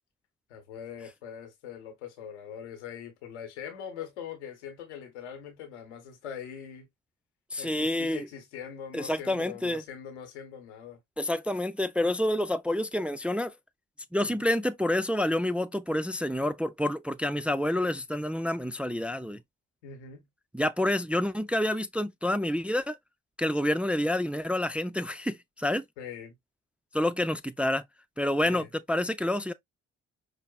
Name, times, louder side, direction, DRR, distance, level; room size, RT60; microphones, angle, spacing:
voice 1, 0.5-6.9 7.6-11.0 14.2-14.4 19.8-20.3 26.0-26.4 28.4-28.7, left 8 dB, 90° left, 1.0 m, -42 dB
voice 2, 7.5-8.3 8.9-9.8 11.2-13.5 14.1-19.4 20.5-23.0 23.4-25.8 26.9-27.8 28.2-29.5, left 1 dB, 5° right, 0.3 m, -28 dB
5.2 x 2.5 x 2.3 m
hypercardioid pair, 45°, 34 cm